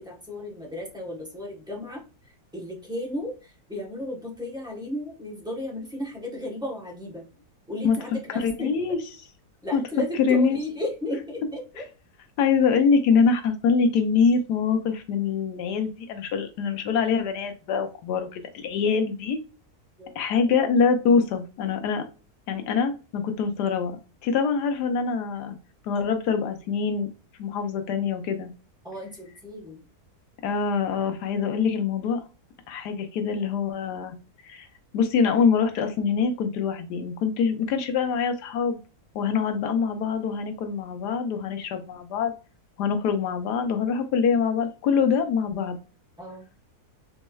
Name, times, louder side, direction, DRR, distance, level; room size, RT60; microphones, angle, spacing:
voice 1, 0.0-2.0 2.5-7.2 7.7-9.0 9.6-11.9 20.0-20.2 28.8-29.8 46.2-46.4, left 1 dB, 5° right, -2 dB, 0.7 m, -34 dB
voice 2, 8.3-9.0 9.7-9.8 10.2-10.6 12.4-19.4 20.2-22.0 22.5-24.0 24.2-25.6 25.8-27.1 27.4-28.5 30.4-32.2 32.7-34.1 34.4-34.7 34.9-38.8 39.1-42.3 42.8-45.8, left 5 dB, 90° left, 7 dB, 1.3 m, -24 dB
4.3 x 3.0 x 2.2 m, 0.33 s
omnidirectional pair, 1.7 m